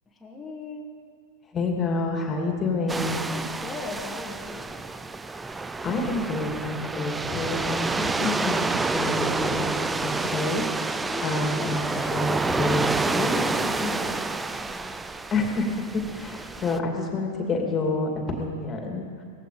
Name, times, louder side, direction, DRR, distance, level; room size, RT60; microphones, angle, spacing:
voice 1, 0.1-0.9 3.2-4.8 10.9-12.1 13.7-14.9, left 3 dB, 10° left, -5 dB, 2.1 m, -39 dB
voice 2, 1.5-3.3 5.8-11.8 12.1-14.0 15.3-19.2, left 2 dB, 25° left, 2 dB, 2.6 m, -28 dB
sound 1, 2.9-16.8, right 3 dB, 10° right, 0.5 m, -29 dB
17.5 x 15.0 x 5.1 m, 2.3 s
hypercardioid pair, 110°, 0 cm